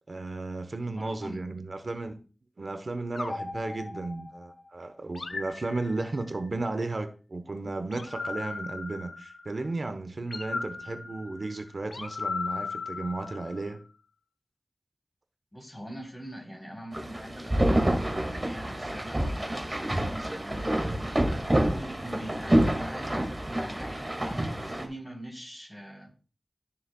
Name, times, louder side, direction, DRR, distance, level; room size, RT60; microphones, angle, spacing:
voice 1, 0.1-2.2 2.6-13.8, right 2 dB, 70° right, 0.9 m, -34 dB
voice 2, 0.9-1.4 15.5-21.3 21.6-23.3 23.6-26.1, equal, 10° left, 3.4 m, -43 dB
sound 1, 3.1-4.5 5.1-6.4 7.9-9.6 10.3-13.8, left 4 dB, 85° left, 0.7 m, -37 dB
sound 2, 16.9-24.9, right 1 dB, 35° right, 2.0 m, -28 dB
13.0 x 7.1 x 2.3 m
wide cardioid pair, 60°, 0 cm